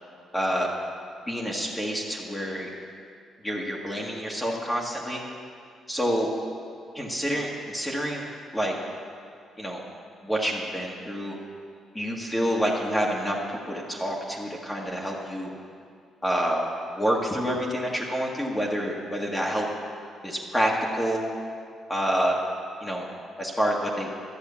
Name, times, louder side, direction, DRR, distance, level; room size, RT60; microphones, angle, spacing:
voice 1, 0.3-0.7 1.3-2.7 3.4-5.2 5.9-6.3 6.9-8.3 8.5-8.7 9.6-9.8 10.2-11.4 11.9-15.5 16.2-16.6 16.9-19.7 20.2-21.2 21.9-22.4 22.8-23.1 23.4-24.1, equal, 10° left, -3 dB, 1.7 m, -27 dB
12.0 x 7.8 x 7.0 m, 2.3 s
cardioid pair, 90°, 0 cm